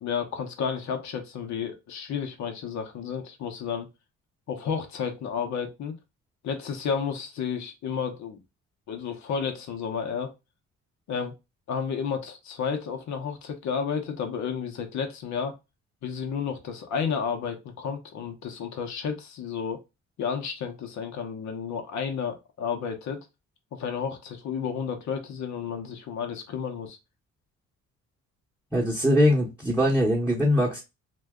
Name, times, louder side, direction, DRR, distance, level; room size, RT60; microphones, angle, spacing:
voice 1, 0.0-3.9 4.5-5.9 6.4-8.4 8.9-10.3 11.1-11.3 11.7-15.6 16.0-19.8 20.2-23.2 23.7-27.0, left 6 dB, 65° left, 0.8 m, -31 dB
voice 2, 28.7-30.8, equal, 5° right, 0.9 m, -22 dB
2.6 x 2.2 x 3.5 m
cardioid pair, 90°, 30 cm